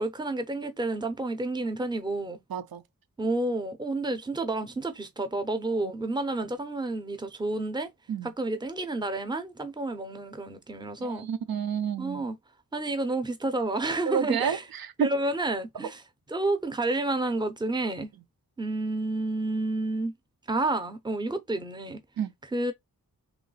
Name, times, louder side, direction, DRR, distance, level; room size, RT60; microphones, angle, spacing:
voice 1, 0.0-2.4 3.2-7.9 8.2-11.3 12.0-12.4 12.7-14.6 15.0-16.0 16.3-18.1 18.6-20.1 20.5-22.0 22.5-22.7, right 2 dB, 10° right, 0.6 m, -30 dB
voice 2, 2.5-2.8 5.8-5.9 8.1-8.3 11.0-12.2 14.1-15.1 22.2-22.3, right 8 dB, 75° right, 0.6 m, -30 dB
3.1 x 3.1 x 3.9 m
wide cardioid pair, 140°, 36 cm